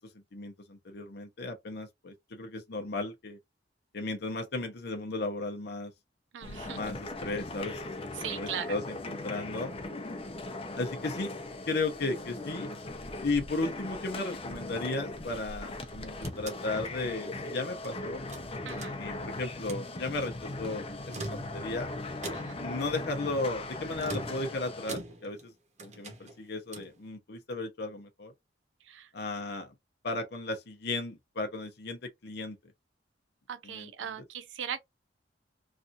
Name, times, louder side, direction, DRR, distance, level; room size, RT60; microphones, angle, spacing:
voice 1, 0.3-3.4 3.9-5.9 6.7-7.9 8.4-9.7 10.7-11.3 11.7-12.7 13.2-18.2 19.0-21.1 21.5-21.9 22.6-25.5 25.8-28.3 29.1-29.7 30.0-32.6 33.6-34.2, left 2 dB, 60° left, 0.8 m, -35 dB
voice 2, 6.3-6.8 8.2-8.7 18.7-19.0 22.3-22.6 28.9-29.1 33.5-34.8, right 8 dB, 80° right, 0.5 m, -39 dB
sound 1, 6.4-24.9, left 2 dB, 30° left, 0.8 m, -39 dB
sound 2, 15.9-17.9 18.3-19.3 19.6-19.9 20.9-21.8 22.2-22.7 24.0-25.5 25.8-27.0, right 2 dB, 40° right, 1.0 m, -43 dB
3.3 x 2.7 x 2.5 m
head